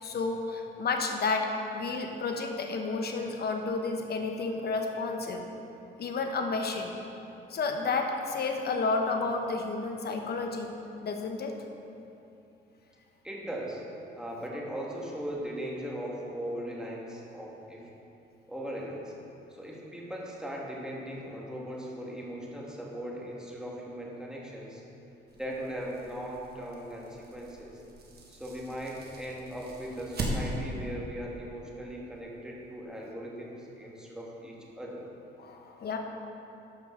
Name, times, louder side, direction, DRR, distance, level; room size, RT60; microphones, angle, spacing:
voice 1, 0.0-1.5 1.7-5.5 6.0-6.9 7.5-10.7 11.0-11.5 35.4-36.0, left 3 dB, 55° left, 4 dB, 1.0 m, -31 dB
voice 2, 13.2-13.8 14.2-17.9 18.5-19.1 19.5-24.8 25.3-27.7 28.3-35.1, equal, 5° right, -3 dB, 1.6 m, -39 dB
sound 1, 25.3-30.9, right 1 dB, 55° right, 1.5 m, -39 dB
12.5 x 5.3 x 3.8 m, 2.9 s
cardioid pair, 90°, 20 cm